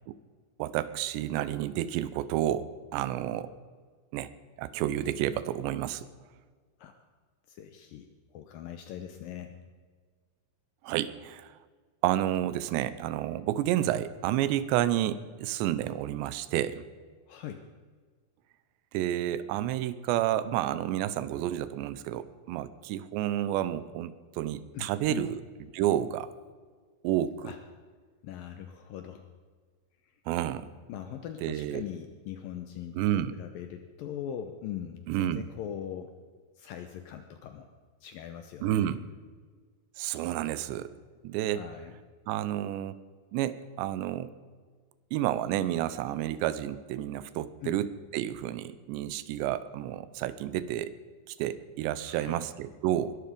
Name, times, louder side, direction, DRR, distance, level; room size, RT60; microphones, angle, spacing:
voice 1, 0.6-3.5 4.1-4.3 4.6-6.1 10.8-11.6 12.0-16.9 18.9-25.4 25.7-26.3 27.0-27.5 30.3-30.7 31.4-31.8 33.0-33.4 35.1-35.4 38.6-39.0 40.0-40.9 41.2-41.6 42.3-43.0 43.3-44.3 45.1-50.9 51.3-53.2, right 12 dB, 90° right, 15 dB, 2.9 m, -30 dB
voice 2, 7.5-8.1 8.3-9.6 17.3-17.6 24.7-25.3 27.4-27.6 28.2-29.3 30.9-36.1 36.6-37.7 38.0-38.9 41.5-41.9 47.6-47.8 52.0-52.4, left 10 dB, 75° left, 7 dB, 2.1 m, -41 dB
22.0 x 12.5 x 5.1 m, 1.5 s
omnidirectional pair, 5.0 m